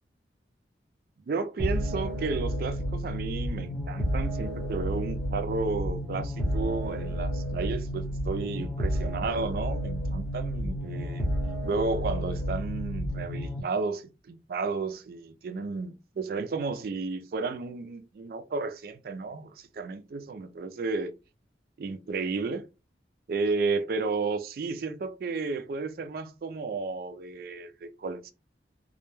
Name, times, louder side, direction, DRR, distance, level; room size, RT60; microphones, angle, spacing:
voice 1, 1.2-11.2 11.7-21.1 21.8-22.6 23.3-28.3, right 4 dB, 55° right, 0.3 m, -32 dB
sound 1, 1.6-13.6, equal, 5° left, 0.6 m, -31 dB
2.1 x 2.1 x 3.0 m
head